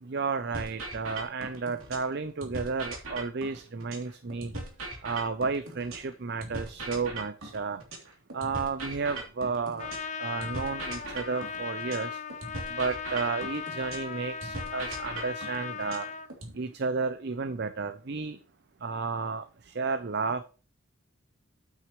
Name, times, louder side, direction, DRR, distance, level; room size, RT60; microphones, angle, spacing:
voice 1, 0.0-4.5 5.0-7.8 8.3-9.9 10.2-12.2 12.7-16.1 16.5-18.4 18.8-20.4, right 4 dB, 50° right, 11 dB, 0.6 m, -32 dB
sound 1, 0.5-2.1 2.4-6.1 6.4-10.1 10.4-14.1 14.4-16.5, right 2 dB, 75° right, 3.2 m, -39 dB
Trumpet, 9.8-16.3, left 6 dB, 35° left, 0.6 m, -37 dB
9.0 x 9.0 x 3.2 m, 0.34 s
head